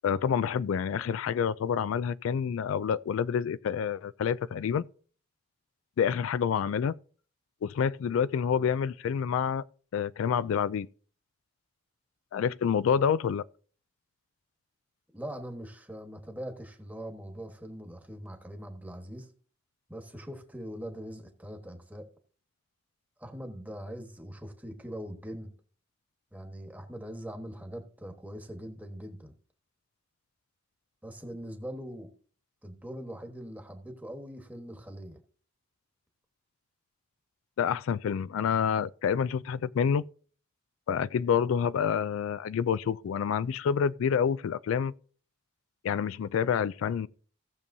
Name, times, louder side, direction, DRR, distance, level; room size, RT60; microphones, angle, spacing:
voice 1, 0.0-4.9 6.0-6.9 7.6-9.6 9.9-10.9 12.3-13.4 37.6-40.1 40.9-44.9 45.8-47.1, left 7 dB, 85° left, 0.3 m, -28 dB
voice 2, 15.1-19.3 19.9-22.1 23.2-25.5 26.3-29.3 31.0-32.1 32.6-35.2, equal, 10° right, 1.3 m, -42 dB
17.0 x 6.8 x 2.7 m
head